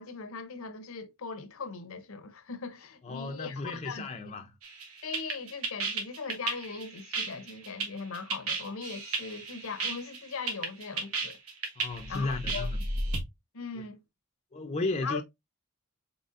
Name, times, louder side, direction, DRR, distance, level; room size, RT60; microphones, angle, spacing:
voice 1, 0.0-4.1 5.0-11.4 12.1-12.7 13.5-14.0 15.0-15.2, left 4 dB, 70° left, 0.7 m, -39 dB
voice 2, 3.0-4.5 11.8-12.8 14.5-15.2, left 3 dB, 30° left, 0.5 m, -34 dB
sound 1, 4.6-13.2, right 3 dB, 80° right, 1.2 m, -33 dB
4.2 x 4.0 x 2.5 m
head